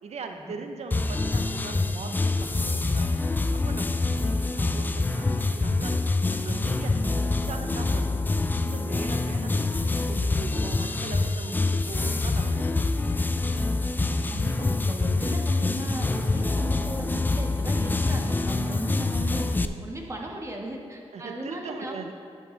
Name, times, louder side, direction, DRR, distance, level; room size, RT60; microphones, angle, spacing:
voice 1, 0.0-3.2 3.5-6.0 6.3-8.3 8.6-12.9 19.5-19.8 21.1-22.1, right 4 dB, 65° right, 5 dB, 0.7 m, -40 dB
sound 1, 0.9-19.7, left 3 dB, 15° left, 0.3 m, -26 dB
voice 2, 14.3-19.4 19.8-22.0, right 1 dB, 25° right, 0 dB, 1.2 m, -36 dB
9.7 x 6.4 x 3.2 m, 2.3 s
cardioid pair, 85°, 12 cm